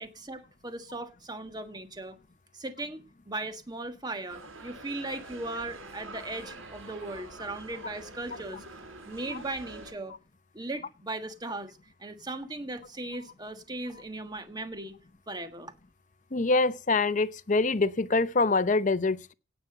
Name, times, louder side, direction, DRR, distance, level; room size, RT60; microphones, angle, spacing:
voice 1, 0.0-2.2 2.5-3.0 3.3-8.6 9.1-10.2 10.5-14.9 15.3-15.7, right 2 dB, 20° right, 1.5 m, -38 dB
sound 1, 4.3-9.9, right 2 dB, 80° right, 5.6 m, -46 dB
voice 2, 16.3-19.3, left 3 dB, 35° left, 0.7 m, -25 dB
17.5 x 6.0 x 7.7 m
head